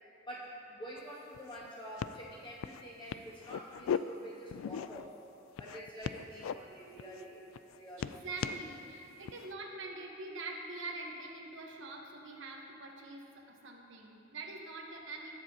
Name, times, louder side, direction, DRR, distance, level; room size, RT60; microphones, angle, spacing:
voice 1, 0.3-5.1 5.6-7.4 7.7-8.2, right 1 dB, 25° left, -7 dB, 2.1 m, -47 dB
sound 1, 1.0-1.1 1.3-1.7 2.0-2.2 2.6-2.8 3.1-4.0 4.5-5.1 5.6-6.5 7.0-7.2 7.5-8.6 9.2-9.5, left 8 dB, 80° left, 0.3 m, -38 dB
voice 2, 8.0-15.4, right 2 dB, 65° right, 0 dB, 1.2 m, -44 dB
20.0 x 7.4 x 2.9 m, 2.8 s
head